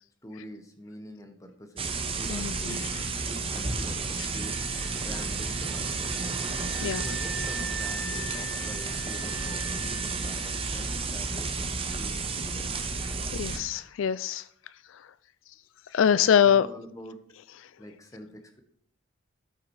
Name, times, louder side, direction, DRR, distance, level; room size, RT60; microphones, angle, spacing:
voice 1, 0.2-4.6 5.0-6.3 6.8-12.7 16.2-17.2 17.8-18.6, equal, 15° left, 5 dB, 1.2 m, -45 dB
sound 1, 1.8-13.6, right 4 dB, 25° right, 0.9 m, -32 dB
voice 2, 2.3-2.8 6.8-7.0 13.3-14.4 15.9-16.7, left 8 dB, 65° left, 16 dB, 0.3 m, -23 dB
sound 2, 4.2-11.0, right 1 dB, 85° right, 2.6 m, -42 dB
13.5 x 5.9 x 4.8 m, 0.65 s
head